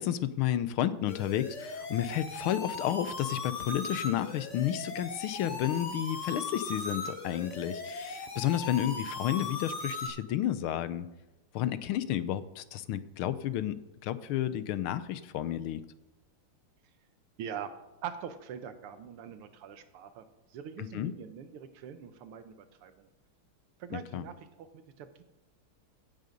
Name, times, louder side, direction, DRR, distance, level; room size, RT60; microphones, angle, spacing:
voice 1, 0.0-11.1 11.5-15.8 20.8-21.1 23.9-24.2, left 11 dB, 80° left, 14 dB, 1.5 m, -31 dB
sound 1, 1.1-10.1, left 3 dB, 35° left, 1.6 m, -38 dB
voice 2, 17.4-17.7 18.0-23.1 23.8-25.2, right 8 dB, 85° right, 10 dB, 1.9 m, -43 dB
16.0 x 7.7 x 5.2 m, 1.0 s
omnidirectional pair, 2.4 m